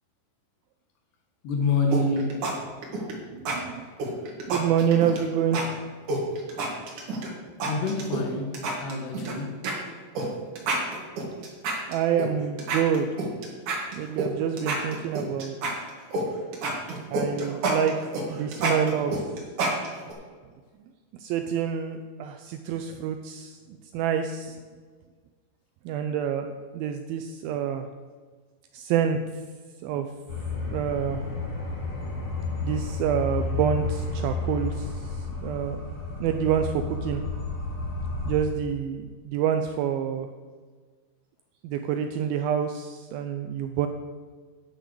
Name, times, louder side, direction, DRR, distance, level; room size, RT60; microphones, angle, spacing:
voice 1, 1.4-2.4 7.7-9.6, left 3 dB, 80° left, 3 dB, 3.4 m, -27 dB
sound 1, 1.9-2.5 2.8-3.1 3.5-3.6 4.0-5.2 5.5-5.6 6.1-7.3 7.6-8.2 8.5-9.3 9.6-9.7 10.2-10.3 10.6-12.3 12.6-14.3 14.6-16.2 16.5-20.1, right 2 dB, 55° right, 2.9 m, -28 dB
voice 2, 3.3-3.8 4.5-5.6 11.9-13.1 13.9-15.6 17.1-19.2 21.2-23.6 23.9-24.6 25.9-26.5 26.7-27.9 28.7-29.2 29.8-30.1 30.7-31.2 32.6-35.8 36.2-37.2 38.3-40.3 41.6-43.9, right 8 dB, 85° right, 7 dB, 2.1 m, -27 dB
sound 2, 30.3-38.4, left 3 dB, 65° left, 4.8 m, -31 dB
9.9 x 6.2 x 6.7 m, 1.5 s
omnidirectional pair, 4.7 m